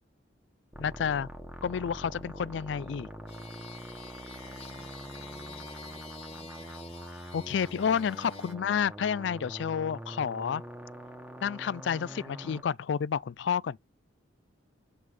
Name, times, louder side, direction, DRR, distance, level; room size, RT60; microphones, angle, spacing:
sound 1, 0.7-12.6, right 1 dB, 5° right, 1.3 m, -44 dB
voice 1, 0.8-1.3 1.6-3.1 7.3-10.6 11.4-13.8, left 7 dB, 70° left, 0.4 m, -30 dB
sound 2, 3.3-8.5, left 5 dB, 30° left, 1.9 m, -49 dB
voice 2, 4.4-6.8 8.2-8.4 12.1-12.3, left 1 dB, 50° left, 1.2 m, -57 dB
7.8 x 3.4 x 4.9 m
head